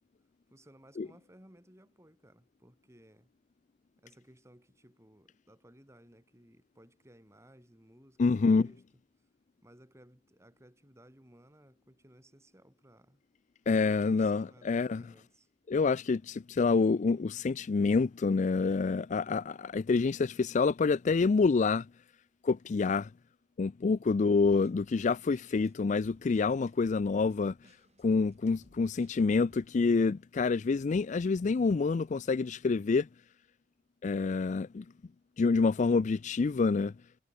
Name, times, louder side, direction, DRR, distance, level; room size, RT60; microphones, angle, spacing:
voice 1, 0.5-3.3 4.0-8.8 9.6-13.2 13.8-15.5, right 1 dB, 15° right, 4.0 m, -59 dB
voice 2, 8.2-8.7 13.7-15.0 15.7-21.9 22.4-23.1 23.6-27.5 28.0-33.1 34.0-34.8 35.4-36.9, left 4 dB, 40° left, 0.4 m, -27 dB
sound 1, 24.3-29.7, right 1 dB, 35° right, 7.2 m, -64 dB
head